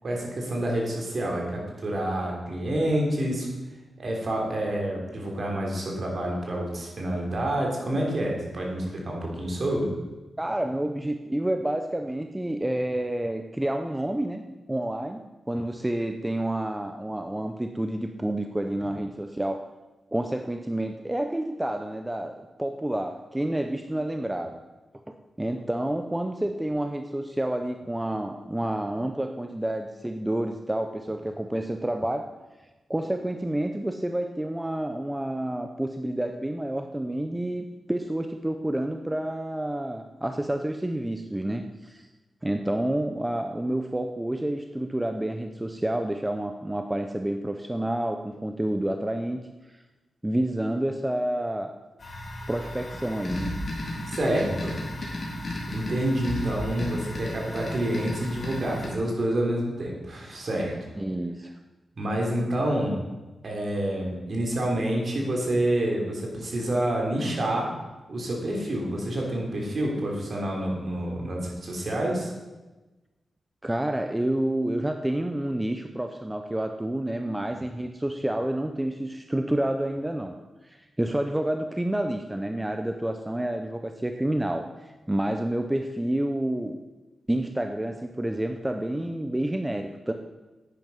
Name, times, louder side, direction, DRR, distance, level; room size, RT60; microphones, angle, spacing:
voice 1, 0.0-3.5 4.0-9.9 54.1-54.7 55.7-60.7 62.0-63.0 63.4-67.7 68.1-72.3, right 1 dB, 50° right, -1 dB, 3.3 m, -28 dB
voice 2, 10.4-19.6 20.1-24.6 25.1-32.3 32.9-42.1 42.4-49.8 50.2-51.7 52.5-53.5 61.0-61.5 73.6-80.4 80.6-86.8 87.3-90.1, right 1 dB, 10° right, 6 dB, 0.6 m, -29 dB
sound 1, 52.0-58.9, left 1 dB, 40° left, 3.2 m, -34 dB
10.5 x 9.3 x 5.4 m, 1.1 s
wide cardioid pair, 115°, 0 cm